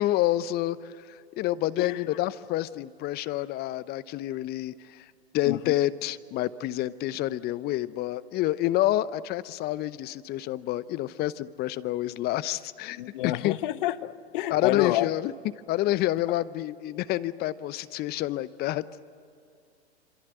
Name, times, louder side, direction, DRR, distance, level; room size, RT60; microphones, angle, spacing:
voice 1, 0.0-5.1 5.3-13.6 14.5-15.3 15.7-18.8, left 15 dB, 30° left, 17 dB, 0.8 m, -28 dB
voice 2, 13.0-15.1, left 15 dB, 50° left, 15 dB, 1.1 m, -29 dB
27.5 x 26.0 x 8.1 m, 2.4 s
hypercardioid pair, 105°, 33 cm